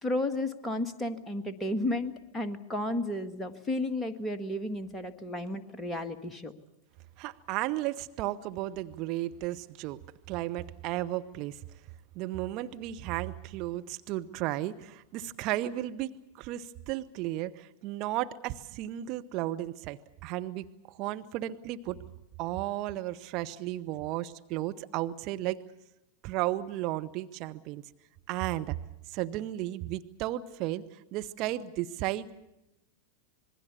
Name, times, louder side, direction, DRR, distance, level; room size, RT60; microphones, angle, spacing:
voice 1, 0.0-6.5, left 1 dB, 10° left, 7 dB, 1.7 m, -33 dB
voice 2, 7.2-10.0 10.3-11.6 12.1-22.0 22.4-25.6 26.2-27.8 28.3-28.8 29.1-32.3, right 15 dB, 40° right, 9 dB, 0.8 m, -34 dB
26.5 x 21.0 x 7.1 m, 0.93 s
figure-of-eight pair, 90°, 0 cm